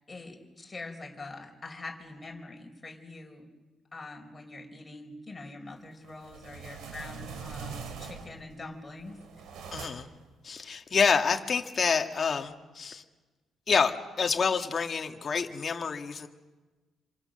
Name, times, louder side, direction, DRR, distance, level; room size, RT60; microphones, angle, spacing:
voice 1, 0.1-3.5 3.9-9.2, left 2 dB, 15° left, 1 dB, 5.0 m, -44 dB
sound 1, 6.0-8.5 9.0-10.2, right 5 dB, 80° right, 3.4 m, -42 dB
voice 2, 9.7-10.1 10.4-13.0 13.7-16.3, left 5 dB, 35° left, 4 dB, 1.8 m, -28 dB
27.0 x 27.0 x 6.6 m, 1.2 s
cardioid pair, 135°, 0 cm